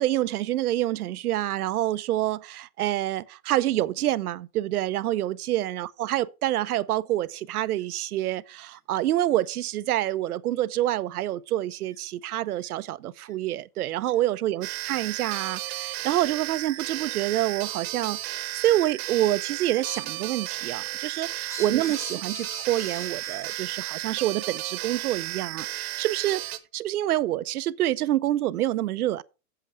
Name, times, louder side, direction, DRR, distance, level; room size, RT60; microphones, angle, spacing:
voice 1, 0.0-26.4 26.7-29.2, right 14 dB, 80° right, 0.7 m, -27 dB
sound 1, 7.7-7.8 8.6-8.8 9.4-9.5 10.0-10.1 10.8-10.9 11.9-12.0 12.6-12.7 13.2-13.3 14.1-14.2 14.9-15.1 15.8-15.9 16.6-16.7 17.5-17.6 18.6-18.9 19.2-20.2 20.6-23.8, equal, 5° left, 1.1 m, -44 dB
sound 2, 14.6-26.6, right 16 dB, 45° right, 1.0 m, -34 dB
7.9 x 7.6 x 4.8 m
hypercardioid pair, 145°, 45 cm